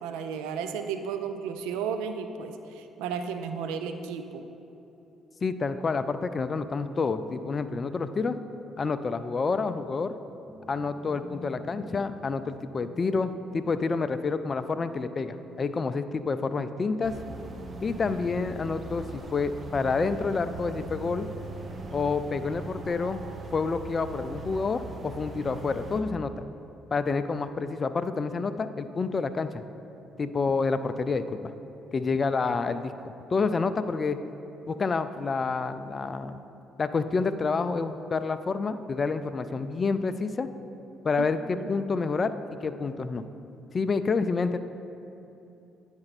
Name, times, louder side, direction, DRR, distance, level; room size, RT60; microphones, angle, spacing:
voice 1, 0.0-4.4 41.2-41.3 41.5-41.7, right 6 dB, 80° right, 7 dB, 0.3 m, -33 dB
voice 2, 5.4-8.4 8.8-10.1 10.7-17.2 17.8-21.3 21.9-26.4 26.9-29.6 30.2-31.5 31.9-34.2 34.7-36.4 36.8-40.5 41.0-43.2 43.7-44.6, left 4 dB, 40° left, 10 dB, 0.3 m, -28 dB
sound 1, 10.5-27.0, left 2 dB, 5° left, 1.1 m, -51 dB
sound 2, 17.0-26.0, right 3 dB, 40° right, 0.7 m, -40 dB
9.6 x 4.4 x 4.1 m, 2.8 s
hypercardioid pair, 60°, 0 cm